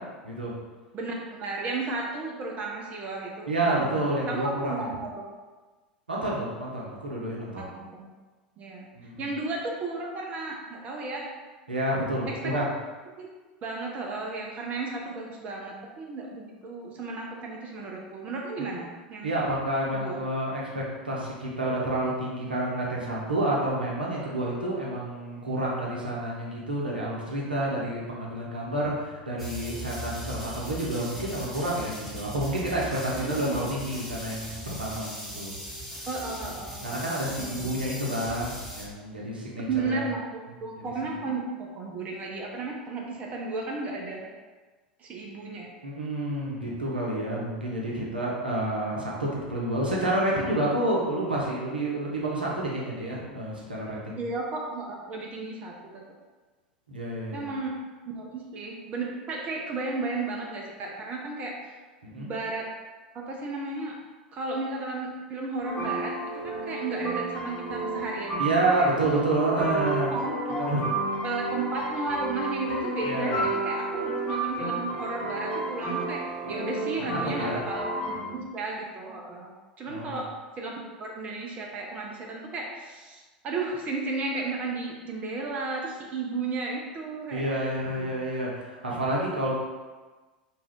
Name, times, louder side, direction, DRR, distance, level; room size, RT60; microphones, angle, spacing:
voice 1, 0.9-5.2 7.6-8.1 8.6-8.9 9.2-11.3 12.3-12.5 13.2-13.3 13.6-19.4 19.9-20.2 33.2-33.8 36.1-36.8 37.3-37.8 39.7-44.3 45.0-45.7 54.2-56.0 57.3-57.8 58.2-61.6 62.2-62.7 63.1-64.0 64.3-68.9 69.4-69.5 70.0-70.7 71.2-80.7 81.0-87.7 88.0-88.2, right 3 dB, 30° right, 0 dB, 0.4 m, -34 dB
voice 2, 3.5-4.9 6.1-7.7 9.0-9.3 11.7-12.7 18.6-18.7 19.2-35.5 36.8-40.0 41.0-41.1 45.8-54.2 56.9-57.5 62.0-62.3 68.4-70.1 70.6-70.8 73.0-73.4 77.0-77.6 79.9-80.2 87.3-89.5, right 1 dB, 80° right, -4 dB, 0.7 m, -29 dB
sound 1, 29.4-38.9, equal, ahead, 0.9 m, -39 dB
sound 2, 65.6-78.2, right 2 dB, 45° left, 1.2 m, -31 dB
2.6 x 2.3 x 3.4 m, 1.3 s
figure-of-eight pair, 80°, 5 cm